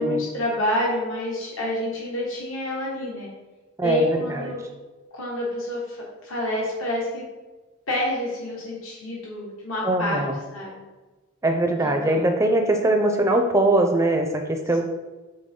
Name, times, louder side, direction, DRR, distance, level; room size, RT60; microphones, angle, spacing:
voice 1, 0.0-3.3 3.8-4.6 5.1-7.2 7.9-10.2 10.5-10.8 11.8-12.3, left 1 dB, 65° left, -4 dB, 1.4 m, -28 dB
voice 2, 3.8-4.5 9.8-10.4 11.4-14.8, right 1 dB, 15° right, 4 dB, 0.4 m, -21 dB
7.6 x 3.7 x 3.7 m, 1.2 s
head